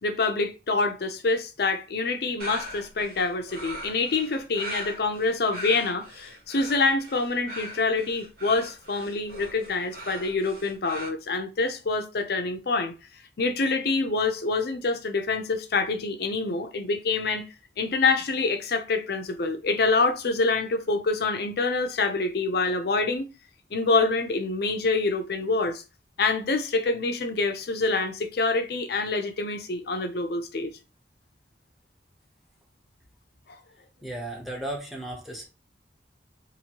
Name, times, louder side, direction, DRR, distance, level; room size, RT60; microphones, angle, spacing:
voice 1, 0.0-12.9 13.4-17.5 17.8-23.2 23.7-25.8 26.2-30.7, left 3 dB, 60° left, 0.6 m, -26 dB
sound 1, 2.4-11.1, equal, 55° right, 0.8 m, -40 dB
voice 2, 34.0-35.5, right 1 dB, ahead, 0.9 m, -35 dB
2.8 x 2.6 x 2.9 m
head